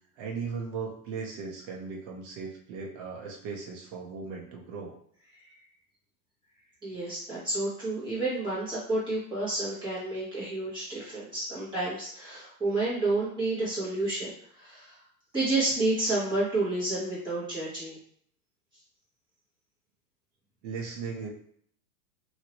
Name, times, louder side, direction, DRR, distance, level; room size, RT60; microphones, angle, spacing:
voice 1, 0.2-5.0 20.6-21.3, right 5 dB, 35° right, -1 dB, 0.8 m, -37 dB
voice 2, 6.8-15.0 15.3-18.0, right 2 dB, 10° right, -9 dB, 1.3 m, -30 dB
2.9 x 2.7 x 2.9 m, 0.63 s
supercardioid pair, 165°, 45 cm